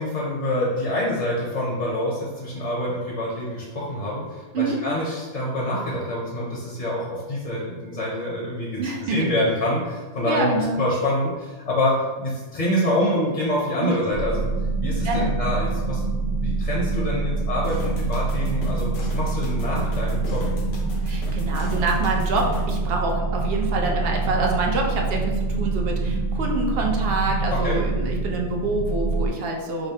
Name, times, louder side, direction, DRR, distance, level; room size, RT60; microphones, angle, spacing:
voice 1, 0.0-10.5 10.8-14.5 14.8-20.4 27.6-27.8, left 1 dB, 45° left, -5 dB, 0.7 m, -26 dB
voice 2, 8.8-9.2 10.3-10.8 13.8-14.0 15.0-15.3 21.0-29.9, right 3 dB, 60° right, 1 dB, 0.7 m, -26 dB
sound 1, 14.1-29.3, right 3 dB, 30° right, 0.6 m, -25 dB
sound 2, 17.6-22.7, left 2 dB, 80° left, 1.1 m, -37 dB
5.0 x 2.0 x 2.7 m, 1.3 s
omnidirectional pair, 1.2 m